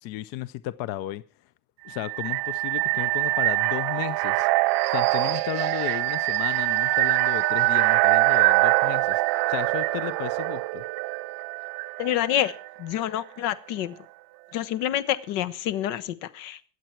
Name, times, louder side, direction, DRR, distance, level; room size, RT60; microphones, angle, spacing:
voice 1, 0.0-1.2 1.8-4.5 4.9-9.2 9.5-10.8, left 14 dB, 55° left, 0.6 m, -34 dB
sound 1, 1.9-12.7, right 22 dB, 50° right, 0.5 m, -24 dB
voice 2, 12.0-12.5 12.8-13.9 14.5-16.7, left 12 dB, 85° left, 1.2 m, -27 dB
22.5 x 8.0 x 4.5 m
cardioid pair, 150°, 44 cm